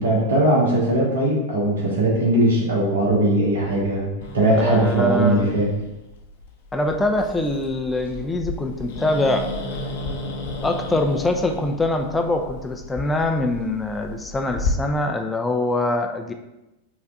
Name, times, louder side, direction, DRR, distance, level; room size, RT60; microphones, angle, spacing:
voice 1, 0.0-4.1 4.3-5.7, right 1 dB, 60° right, -4 dB, 1.4 m, -19 dB
Growling, 4.2-14.7, left 3 dB, 55° left, 0.6 m, -33 dB
voice 2, 4.5-5.5 6.7-9.5 10.6-16.3, left 2 dB, 10° left, 4 dB, 0.4 m, -23 dB
4.5 x 2.5 x 3.5 m, 0.96 s
figure-of-eight pair, 90°, 0 cm